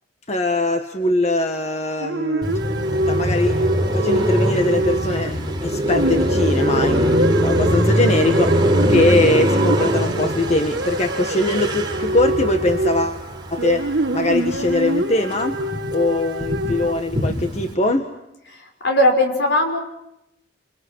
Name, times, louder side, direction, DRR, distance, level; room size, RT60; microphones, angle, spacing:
voice 1, 0.3-2.5 3.1-3.6 3.9-13.2 13.5-15.6 15.9-18.1, left 2 dB, 40° left, 6 dB, 1.6 m, -22 dB
sound 1, 2.0-5.6 5.9-16.9, right 1 dB, 80° right, 1.7 m, -26 dB
Car passing by, 2.4-14.9 15.2-17.7, equal, 25° right, 4.6 m, -22 dB
voice 2, 18.5-19.8, left 1 dB, 70° left, 4 dB, 5.5 m, -19 dB
28.0 x 28.0 x 6.4 m, 0.84 s
head